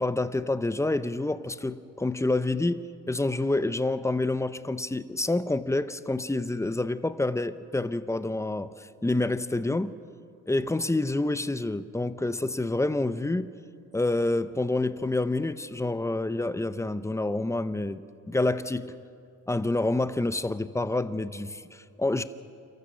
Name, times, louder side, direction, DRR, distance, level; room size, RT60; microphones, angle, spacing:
voice 1, 0.0-9.9 10.5-13.5 13.9-18.0 18.3-18.9 19.5-22.2, left 2 dB, 10° left, 13 dB, 0.7 m, -28 dB
29.0 x 14.5 x 6.3 m, 2.4 s
cardioid pair, 90°, 30 cm